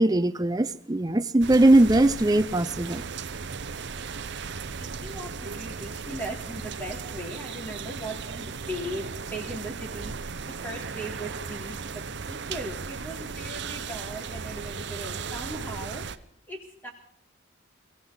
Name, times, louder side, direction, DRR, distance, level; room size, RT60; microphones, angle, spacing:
voice 1, 0.0-3.0, right 1 dB, 20° right, 0.6 m, -20 dB
sound 1, 1.4-16.2, right 5 dB, 55° right, 0.7 m, -36 dB
voice 2, 4.8-10.1 10.4-16.0 16.5-16.9, right 1 dB, 10° left, 3.4 m, -38 dB
23.0 x 16.0 x 4.0 m
head